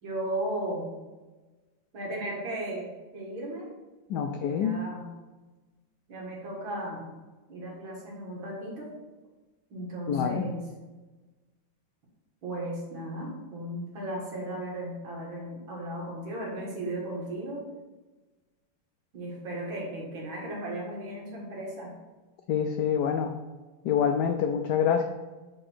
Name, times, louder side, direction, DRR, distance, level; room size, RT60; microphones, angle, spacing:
voice 1, 0.0-1.0 1.9-3.7 4.2-5.1 6.1-7.1 7.5-8.9 9.7-10.7 12.4-17.7 19.1-21.9, right 1 dB, 65° right, -3 dB, 2.5 m, -36 dB
voice 2, 4.1-4.8 10.1-10.4 22.5-23.3 23.8-25.0, left 7 dB, 85° left, 5 dB, 0.9 m, -26 dB
6.6 x 4.8 x 4.4 m, 1.2 s
omnidirectional pair, 2.3 m